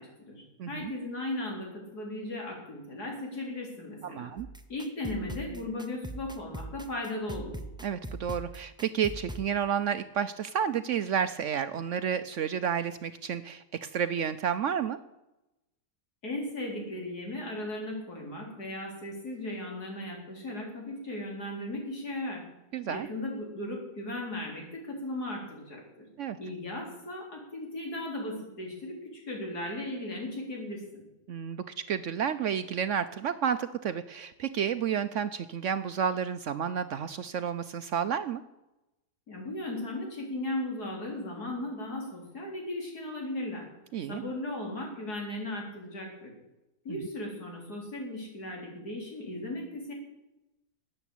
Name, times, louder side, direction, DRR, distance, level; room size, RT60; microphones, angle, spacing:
voice 1, 0.0-4.3 4.7-7.5 16.2-22.5 22.9-26.1 26.4-31.0 39.3-43.7 44.1-46.3 46.8-49.9, left 1 dB, 75° left, 0 dB, 4.4 m, -37 dB
voice 2, 0.6-0.9 4.0-4.5 7.8-15.0 22.7-23.1 26.2-26.4 31.3-38.4 43.9-44.2 46.9-47.0, right 8 dB, 65° right, 12 dB, 0.8 m, -31 dB
sound 1, 4.4-9.5, right 1 dB, 5° right, 0.4 m, -42 dB
13.0 x 9.0 x 8.5 m, 0.96 s
omnidirectional pair, 1.7 m